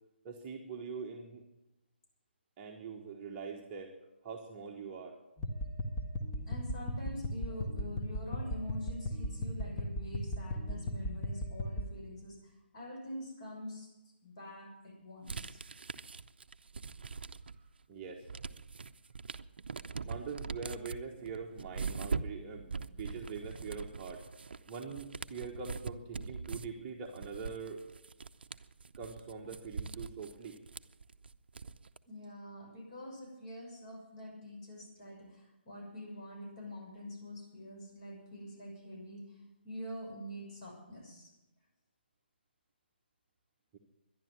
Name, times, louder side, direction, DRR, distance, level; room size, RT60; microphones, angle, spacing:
voice 1, 0.2-1.4 2.6-3.9 4.2-5.2 17.6-17.7 17.9-18.3 20.0-24.2 24.7-27.8 28.9-30.6 43.7-43.8, right 5 dB, 20° right, 0 dB, 1.2 m, -43 dB
sound 1, 5.4-11.8, equal, 15° left, 1.4 m, -37 dB
voice 2, 6.5-13.9 14.2-15.6 32.1-41.3, left 1 dB, 35° left, 0 dB, 6.5 m, -46 dB
sound 2, 15.3-17.7 18.0-32.0, right 5 dB, 60° right, 0.6 m, -42 dB
12.0 x 11.0 x 9.5 m, 0.98 s
figure-of-eight pair, 145°, 6 cm